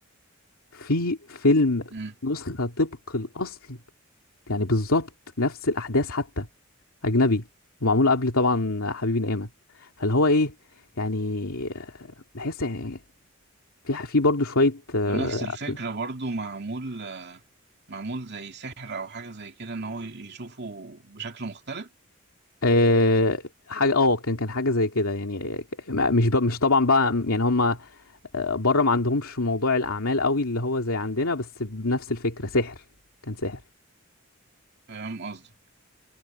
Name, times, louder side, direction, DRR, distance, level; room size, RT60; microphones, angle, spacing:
voice 1, 0.7-1.9 2.2-3.8 4.5-5.1 5.4-6.5 7.0-7.4 7.8-9.5 9.8-10.5 11.0-12.1 12.3-13.0 13.9-15.4 15.7-15.8 22.6-23.4 23.7-28.0 28.3-32.8 33.3-33.6, left 2 dB, 90° left, 2.5 m, -24 dB
voice 2, 15.1-17.4 17.9-21.9 34.9-35.5, right 3 dB, 55° right, 2.6 m, -35 dB
head